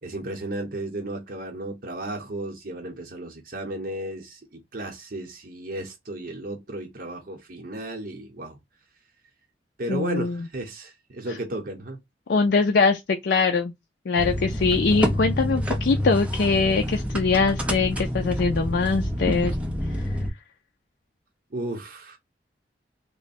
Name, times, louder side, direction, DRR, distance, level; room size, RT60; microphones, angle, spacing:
voice 1, 0.0-8.6 9.8-12.0 21.5-22.2, right 1 dB, 55° right, 0.9 m, -34 dB
voice 2, 9.9-10.5 12.3-13.7 14.1-19.6 19.9-20.0, left 4 dB, 65° left, 0.4 m, -22 dB
sound 1, 14.2-20.3, equal, 5° right, 0.6 m, -27 dB
3.4 x 2.1 x 4.0 m
head